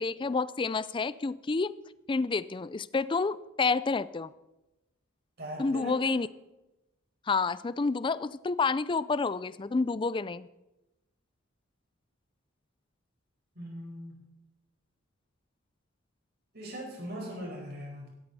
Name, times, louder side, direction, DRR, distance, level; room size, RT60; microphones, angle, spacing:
voice 1, 0.0-1.7 2.1-4.3 5.6-6.3 7.3-10.5, left 4 dB, 25° left, 17 dB, 0.4 m, -29 dB
voice 2, 5.4-6.2 13.5-14.1 16.5-18.1, equal, 50° right, 0 dB, 4.9 m, -40 dB
16.5 x 13.0 x 4.2 m, 0.98 s
head